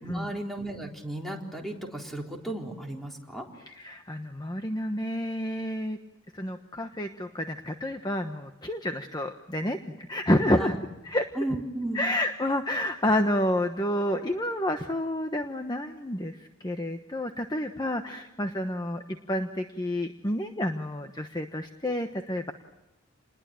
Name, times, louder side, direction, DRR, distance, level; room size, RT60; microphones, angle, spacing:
voice 1, 0.0-3.5 10.6-10.8 11.4-12.0, right 1 dB, ahead, 0 dB, 3.8 m, -34 dB
voice 2, 3.7-6.0 6.3-10.8 11.0-11.3 11.9-22.5, left 1 dB, 20° left, 6 dB, 1.2 m, -29 dB
29.0 x 21.0 x 8.9 m, 0.94 s
head